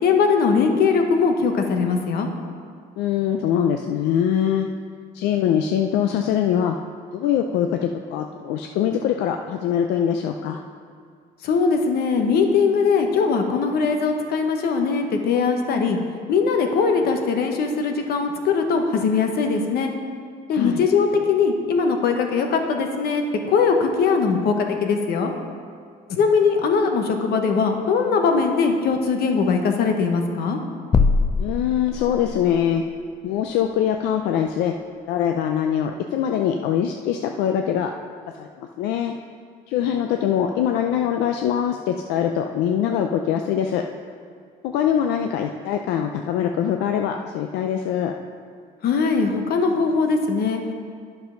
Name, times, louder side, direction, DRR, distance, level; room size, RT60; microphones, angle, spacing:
voice 1, 0.0-2.3 11.4-16.0 16.3-19.9 20.5-25.3 26.1-30.6 48.8-50.6, left 5 dB, 70° left, 4 dB, 1.1 m, -20 dB
voice 2, 3.0-4.7 5.1-6.8 7.1-10.6 20.5-20.8 31.4-32.8 33.2-34.7 35.1-37.9 38.4-39.1 39.7-43.8 44.6-48.1, left 9 dB, 90° left, 4 dB, 0.5 m, -23 dB
sound 1, 30.9-32.5, left 4 dB, 25° left, 0.4 m, -21 dB
10.0 x 5.5 x 5.7 m, 2.2 s
cardioid pair, 110°, 17 cm